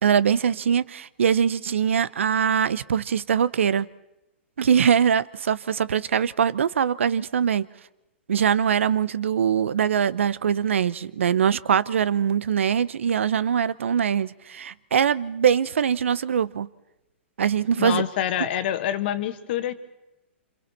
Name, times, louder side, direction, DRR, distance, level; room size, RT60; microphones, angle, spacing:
voice 1, 0.0-3.9 4.6-7.6 8.3-16.7 17.4-18.0, right 8 dB, 80° right, 0.7 m, -22 dB
voice 2, 17.8-19.7, left 11 dB, 55° left, 1.5 m, -26 dB
27.0 x 27.0 x 4.3 m
hypercardioid pair, 130°, 7 cm